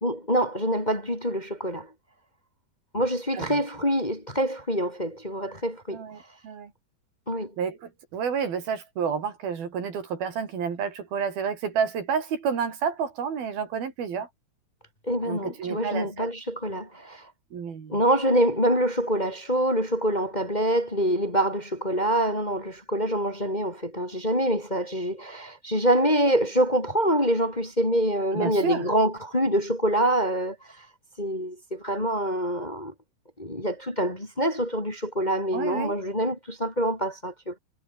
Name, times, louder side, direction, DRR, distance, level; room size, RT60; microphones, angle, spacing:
voice 1, 0.0-1.9 2.9-6.0 7.3-7.5 15.1-17.2 17.9-30.6 31.2-32.9 33.4-37.6, equal, 15° left, 2.1 m, -25 dB
voice 2, 5.9-6.7 7.6-14.3 15.2-16.3 17.5-18.0 28.3-28.9 35.5-36.1, right 6 dB, 65° right, 5.5 m, -30 dB
omnidirectional pair, 4.6 m